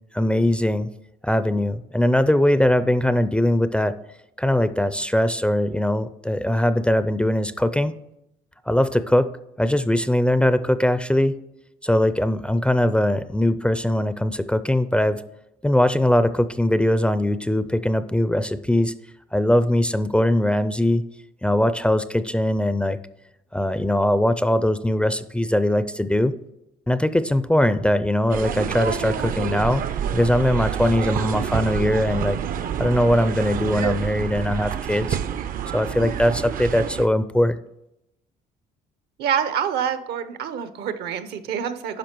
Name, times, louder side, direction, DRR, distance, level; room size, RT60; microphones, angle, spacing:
voice 1, 0.1-0.9 1.2-3.9 4.4-7.9 8.7-9.3 9.6-11.3 11.8-15.2 15.6-18.9 19.3-21.0 21.4-23.0 23.5-26.3 26.9-29.8 30.1-32.4 32.8-35.2 35.7-37.6, left 1 dB, 5° left, 13 dB, 0.4 m, -21 dB
sound 1, 28.3-37.1, right 9 dB, 55° right, 0.6 m, -28 dB
voice 2, 39.2-42.0, right 8 dB, 75° right, 11 dB, 0.9 m, -26 dB
10.0 x 5.9 x 4.5 m, 0.84 s
cardioid pair, 110°, 17 cm